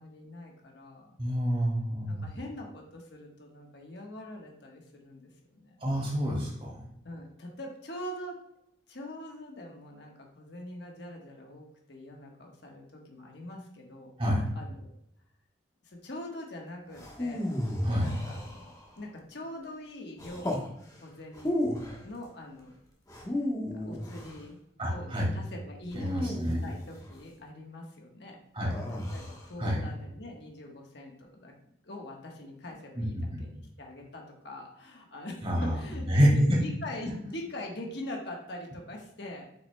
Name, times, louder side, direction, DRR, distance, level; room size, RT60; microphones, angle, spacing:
voice 1, 0.0-1.2 2.1-5.2 5.5-5.7 7.0-8.4 8.9-14.1 14.5-14.9 15.8-17.5 18.0-20.7 21.0-21.6 22.0-22.7 23.7-24.6 24.9-31.5 31.8-36.0 36.3-39.5, left 1 dB, 65° left, 0 dB, 1.3 m, -43 dB
voice 2, 1.2-2.2 5.8-6.8 14.2-14.5 17.8-18.1 24.8-25.3 25.9-26.6 28.5-28.7 29.6-29.8 33.0-33.4 35.4-35.8 36.1-36.6, equal, 30° right, -3 dB, 2.3 m, -27 dB
sound 1, 16.9-18.9 20.2-20.7 21.3-22.0 23.1-24.4 25.9-27.1 28.7-29.5, left 1 dB, 20° left, 1.1 m, -34 dB
8.0 x 5.8 x 2.2 m, 0.76 s
head